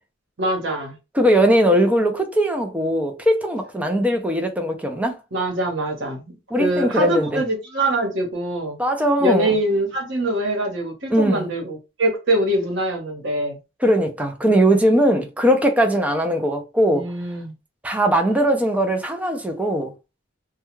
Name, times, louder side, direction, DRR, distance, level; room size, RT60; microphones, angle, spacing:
voice 1, 0.4-1.0 5.3-8.8 9.2-13.6 16.9-17.5, right 1 dB, 65° right, 1.1 m, -23 dB
voice 2, 1.1-5.2 6.5-7.4 8.8-9.6 11.1-11.5 13.8-17.1 17.8-19.9, equal, 10° right, 0.5 m, -19 dB
2.3 x 2.2 x 3.0 m
head